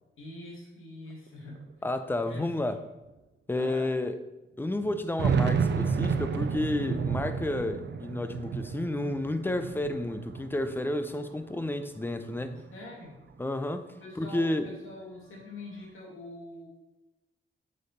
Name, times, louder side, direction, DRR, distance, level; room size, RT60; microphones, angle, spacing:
voice 1, 0.2-1.9 2.2-2.8 3.5-3.9 12.5-13.2 14.0-16.7, left 1 dB, 75° left, -3 dB, 2.3 m, -44 dB
sound 1, 1.3-1.4 1.6-1.7 2.5-2.6 3.1-3.2 4.8-11.2 11.6-12.6, right 6 dB, 55° right, 0.6 m, -31 dB
voice 2, 1.8-2.8 3.5-4.2 4.6-12.6 13.4-13.9 14.2-14.7, left 1 dB, 10° left, 9 dB, 0.6 m, -31 dB
8.0 x 5.4 x 4.2 m, 1.0 s
cardioid pair, 100°, 21 cm